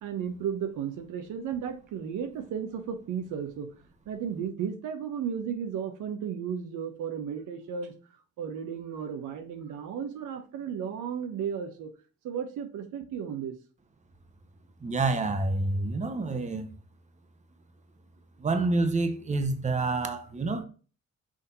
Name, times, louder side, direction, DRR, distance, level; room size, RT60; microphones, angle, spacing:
voice 1, 0.0-3.7 4.1-7.9 8.4-11.9 12.2-13.6, right 7 dB, 85° right, 1.1 m, -34 dB
voice 2, 14.8-16.7 18.4-20.6, right 3 dB, 25° right, 0.9 m, -28 dB
6.4 x 2.7 x 5.4 m
cardioid pair, 90°, 30 cm